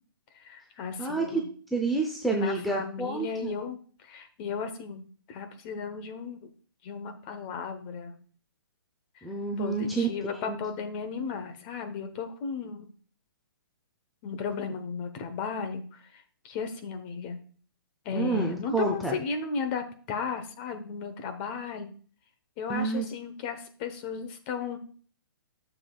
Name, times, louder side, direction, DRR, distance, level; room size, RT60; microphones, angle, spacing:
voice 1, 0.3-1.4 2.3-6.5 6.8-8.2 9.2-9.3 9.6-12.9 14.2-17.4 18.0-21.9 22.6-24.8, left 5 dB, 25° left, 8 dB, 0.9 m, -35 dB
voice 2, 1.0-3.5 9.2-10.1 10.4-10.6 18.1-19.2 22.7-23.1, right 3 dB, ahead, 1 dB, 0.5 m, -29 dB
10.5 x 7.1 x 2.3 m, 0.42 s
hypercardioid pair, 160°, 12 cm